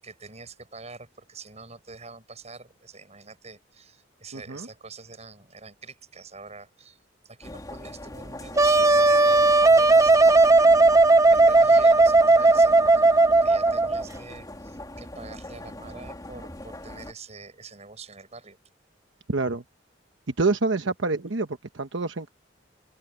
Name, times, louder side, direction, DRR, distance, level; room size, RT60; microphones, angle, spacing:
voice 1, 0.0-10.8 11.2-18.6, right 4 dB, 35° right, 8.0 m, -45 dB
voice 2, 4.3-4.7 19.3-19.6 20.4-21.5 21.7-22.3, right 3 dB, 80° right, 1.1 m, -26 dB
sound 1, 7.4-17.1, left 1 dB, 20° left, 3.2 m, -41 dB
Wind instrument woodwind instrument, 8.6-14.1, right 3 dB, 15° right, 0.8 m, -17 dB
head